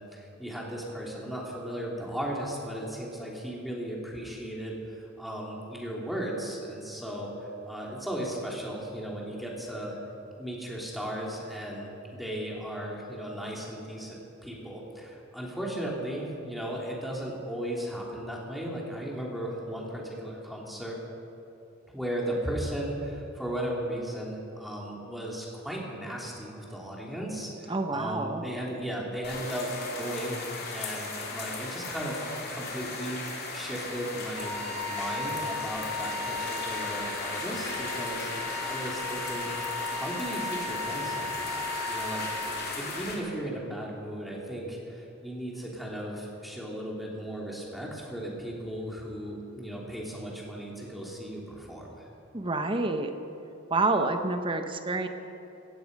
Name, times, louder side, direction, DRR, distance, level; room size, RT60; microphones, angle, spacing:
voice 1, 0.0-9.9 10.4-21.0 21.9-34.6 34.9-38.3 38.6-39.7 39.9-52.1, right 1 dB, ahead, -3 dB, 3.0 m, -36 dB
voice 2, 27.7-28.4 52.3-53.1 53.7-55.1, right 2 dB, 25° right, 7 dB, 1.0 m, -28 dB
sound 1, 29.2-43.1, left 3 dB, 50° left, 2.9 m, -36 dB
Wind instrument woodwind instrument, 34.4-42.5, left 2 dB, 40° right, 2.9 m, -36 dB
17.0 x 15.0 x 5.3 m, 2.9 s
head